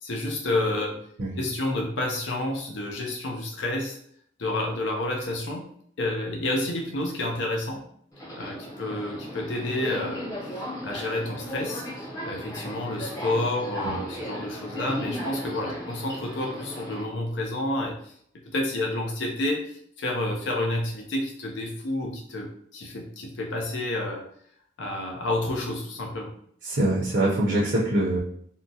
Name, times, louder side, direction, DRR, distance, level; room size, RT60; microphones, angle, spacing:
voice 1, 0.0-1.0 1.4-4.0 4.4-5.7 6.0-7.8 8.4-11.8 12.2-18.1 18.5-24.2 24.8-26.3, left 1 dB, 70° left, 0 dB, 0.5 m, -29 dB
Subway metro underground, 8.1-17.0, equal, 20° left, 0.6 m, -36 dB
voice 2, 26.6-28.2, right 1 dB, 65° right, -5 dB, 0.6 m, -24 dB
3.7 x 2.1 x 2.7 m, 0.65 s
head